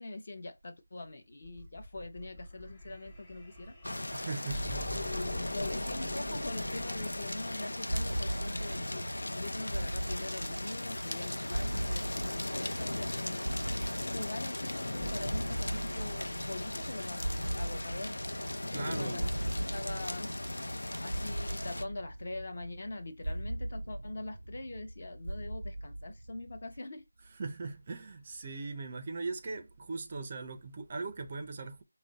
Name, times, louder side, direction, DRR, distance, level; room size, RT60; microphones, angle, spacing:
voice 1, 0.0-3.7 4.9-13.6 14.1-18.2 18.8-19.2 19.7-20.3 21.0-27.1, left 2 dB, 35° left, 0.7 m, -43 dB
sound 1, 1.4-8.7 15.0-19.1, right 1 dB, 15° left, 1.1 m, -46 dB
sound 2, 3.8-21.8, left 1 dB, 80° left, 0.6 m, -37 dB
voice 2, 4.1-5.1 18.7-19.6 27.3-31.8, right 3 dB, 25° right, 0.4 m, -40 dB
sound 3, 7.9-26.8, right 1 dB, 90° right, 0.3 m, -39 dB
5.0 x 2.1 x 3.9 m
figure-of-eight pair, 175°, 0 cm